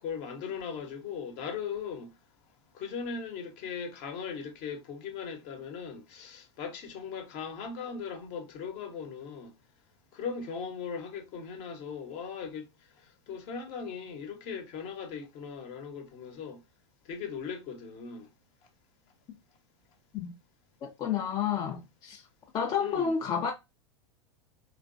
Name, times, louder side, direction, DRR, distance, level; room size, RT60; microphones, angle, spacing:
voice 1, 0.0-2.1 2.7-9.5 10.1-12.7 13.3-16.6 17.0-18.3 22.8-23.1, left 6 dB, 45° left, 1.0 m, -38 dB
voice 2, 20.8-22.2 22.5-23.5, left 7 dB, 25° left, 0.5 m, -30 dB
3.2 x 2.9 x 2.5 m
figure-of-eight pair, 85°, 15 cm